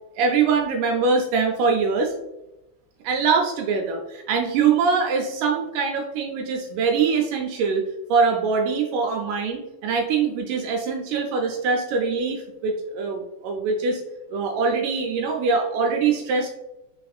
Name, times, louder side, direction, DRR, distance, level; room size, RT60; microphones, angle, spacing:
voice 1, 0.2-2.1 3.0-7.8 8.1-14.0 14.3-16.5, right 5 dB, 80° right, 2 dB, 2.0 m, -23 dB
4.3 x 4.1 x 2.3 m, 0.92 s
omnidirectional pair, 3.9 m